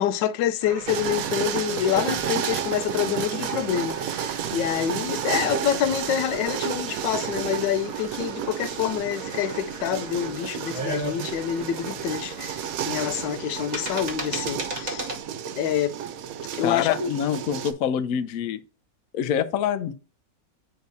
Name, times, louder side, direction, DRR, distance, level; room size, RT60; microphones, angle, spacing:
voice 1, 0.0-15.1 15.6-15.9 16.5-17.1, left 9 dB, 85° left, 1.2 m, -27 dB
sound 1, 0.6-15.2, right 2 dB, 30° right, 1.0 m, -39 dB
sound 2, 0.9-17.7, right 9 dB, 65° right, 0.9 m, -31 dB
voice 2, 16.6-18.6 19.1-19.9, left 9 dB, 70° left, 0.9 m, -26 dB
9.3 x 4.6 x 2.7 m
omnidirectional pair, 1.9 m